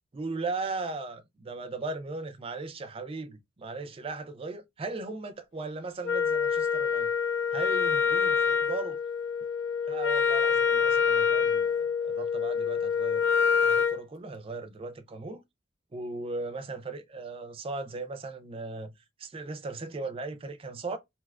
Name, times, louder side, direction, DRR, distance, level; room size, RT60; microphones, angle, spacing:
voice 1, 0.1-7.1 7.5-9.0 9.9-15.4 15.9-18.9 19.2-21.0, right 3 dB, 30° right, 0.4 m, -37 dB
Wind instrument woodwind instrument, 6.0-14.0, left 6 dB, 80° left, 0.6 m, -26 dB
2.8 x 2.4 x 3.2 m
head